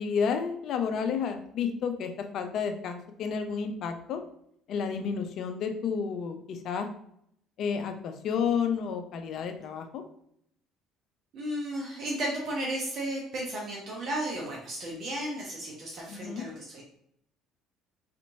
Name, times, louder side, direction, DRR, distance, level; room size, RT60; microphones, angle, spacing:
voice 1, 0.0-4.2 4.7-6.9 7.6-10.0 16.1-16.4, left 6 dB, 60° left, 6 dB, 0.5 m, -31 dB
voice 2, 11.3-16.8, right 1 dB, 55° right, -3 dB, 0.9 m, -34 dB
4.2 x 2.9 x 2.6 m, 0.72 s
hypercardioid pair, 65°, 0 cm